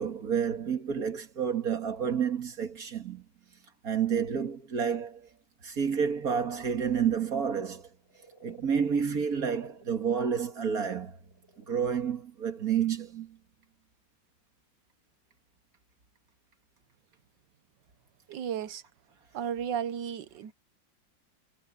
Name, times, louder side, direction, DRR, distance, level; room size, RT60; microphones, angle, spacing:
voice 1, 0.0-3.2 3.8-5.3 5.6-7.9 8.4-11.2 11.7-13.4, right 7 dB, 50° right, 2.3 m, -29 dB
sound 1, 6.1-11.9 12.2-12.3, right 4 dB, 85° left, 6.6 m, -56 dB
voice 2, 18.3-18.8 19.3-20.5, right 8 dB, 75° right, 1.6 m, -34 dB
omnidirectional pair, 2.0 m